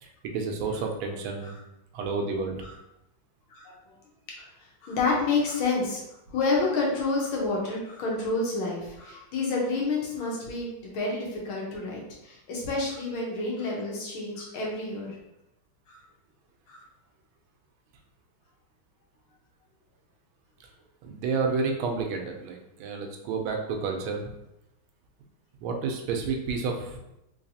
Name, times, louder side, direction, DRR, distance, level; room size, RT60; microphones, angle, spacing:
voice 1, 0.0-1.5 1.9-2.7 21.0-24.3 25.6-27.0, right 4 dB, 85° right, 3 dB, 1.4 m, -30 dB
voice 2, 4.8-6.0 6.3-15.2 15.9-16.0 16.7-16.8, left 3 dB, 75° left, -2 dB, 1.7 m, -29 dB
3.8 x 3.2 x 2.6 m, 0.88 s
omnidirectional pair, 2.3 m